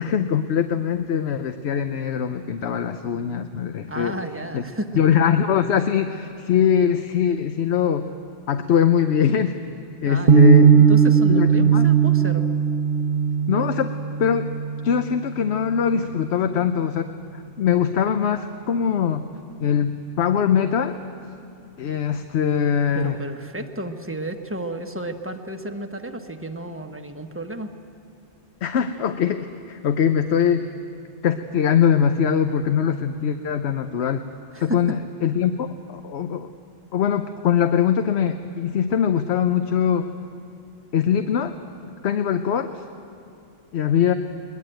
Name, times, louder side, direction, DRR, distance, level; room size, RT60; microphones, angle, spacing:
voice 1, 0.0-4.2 4.5-4.6 4.9-8.1 8.5-9.6 10.0-10.7 11.3-11.9 13.5-14.5 14.8-19.3 19.6-21.0 21.8-23.2 28.6-30.7 31.2-34.2 34.6-36.5 36.9-40.1 40.9-41.6 42.0-42.8 43.7-44.1, left 8 dB, 65° left, 9 dB, 1.0 m, -22 dB
voice 2, 3.9-4.9 10.0-12.5 22.9-27.7 34.5-34.9, right 1 dB, 10° right, 5 dB, 1.2 m, -32 dB
sound 1, 10.3-16.3, right 6 dB, 50° right, 1.1 m, -18 dB
21.5 x 21.5 x 9.1 m, 2.6 s
omnidirectional pair, 1.2 m